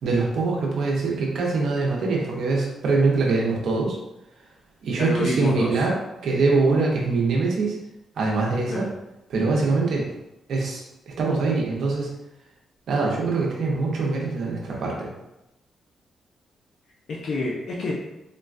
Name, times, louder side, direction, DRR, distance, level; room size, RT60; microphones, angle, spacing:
voice 1, 0.0-4.0 4.8-5.9 6.2-7.8 8.2-8.9 9.3-10.1 10.5-12.1 12.9-15.1, right 3 dB, 75° right, -2 dB, 0.7 m, -23 dB
voice 2, 5.0-5.7 8.7-8.9 17.1-17.9, left 2 dB, 70° left, -4 dB, 0.5 m, -27 dB
3.8 x 2.2 x 2.5 m, 0.91 s
cardioid pair, 90°, 0 cm